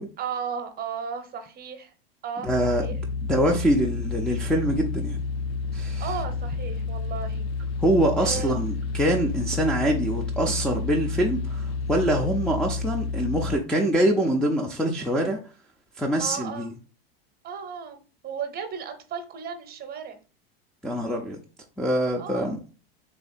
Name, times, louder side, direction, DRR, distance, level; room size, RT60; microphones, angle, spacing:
voice 1, 0.2-1.9 2.2-3.0 6.0-7.5 8.2-8.5 16.2-16.7 17.4-20.2 22.1-22.6, right 6 dB, 30° right, 7 dB, 0.9 m, -35 dB
voice 2, 2.4-2.9 3.2-5.2 5.7-6.0 7.8-15.4 16.0-16.7 20.8-21.4 21.8-22.6, right 1 dB, ahead, -2 dB, 0.5 m, -24 dB
sound 1, 2.5-13.6, left 4 dB, 85° left, 0.5 m, -30 dB
3.4 x 2.7 x 4.1 m, 0.36 s
hypercardioid pair, 110°, 30 cm